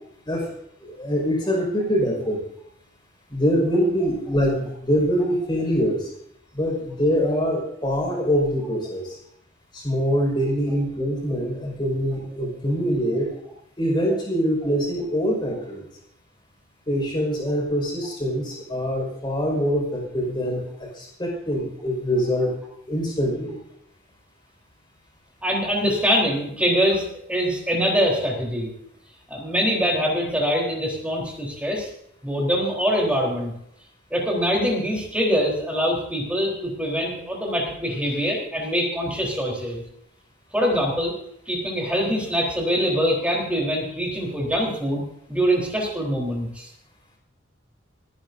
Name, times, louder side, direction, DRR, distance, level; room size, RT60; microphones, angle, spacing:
voice 1, 0.8-2.4 3.3-6.1 6.5-9.2 9.7-13.3 13.8-15.9 16.9-22.5 22.9-23.6, equal, 20° left, 0 dB, 5.3 m, -24 dB
voice 2, 25.4-27.0 27.3-28.7 29.3-31.9 32.2-33.5 34.1-39.8 40.5-41.1 41.5-45.0 45.3-46.7, equal, 5° right, -2 dB, 3.8 m, -23 dB
28.0 x 10.5 x 2.7 m, 0.74 s
head